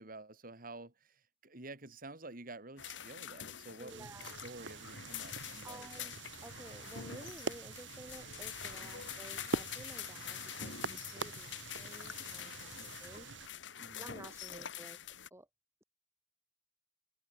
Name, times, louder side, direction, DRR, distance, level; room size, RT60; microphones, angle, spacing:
voice 1, 0.0-6.1 8.8-9.2 12.7-13.0 13.8-14.1 14.5-14.7, right 2 dB, 50° right, 3.5 m, -51 dB
sound 1, 2.8-15.3, left 9 dB, 80° left, 1.8 m, -46 dB
voice 2, 3.8-4.3 5.6-6.2 6.4-13.3 14.0-15.0 15.3-15.5, right 1 dB, 15° right, 3.4 m, -53 dB
sound 2, 3.9-13.5, right 3 dB, 80° right, 2.0 m, -45 dB
head